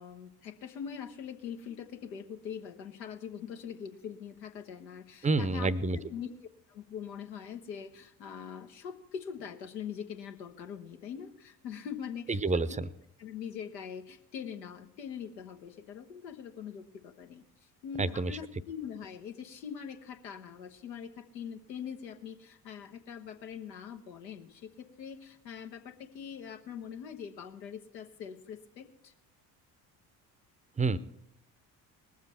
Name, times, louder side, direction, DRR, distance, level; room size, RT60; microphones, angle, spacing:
voice 1, 0.0-5.7 6.1-6.3 6.7-12.6 13.2-17.4 17.8-29.1, left 7 dB, 80° left, 5 dB, 1.2 m, -43 dB
voice 2, 5.2-6.0 12.3-12.9 18.0-18.4 30.8-31.0, right 3 dB, 15° right, 17 dB, 0.7 m, -28 dB
20.5 x 7.4 x 4.3 m, 0.79 s
figure-of-eight pair, 50°, 50 cm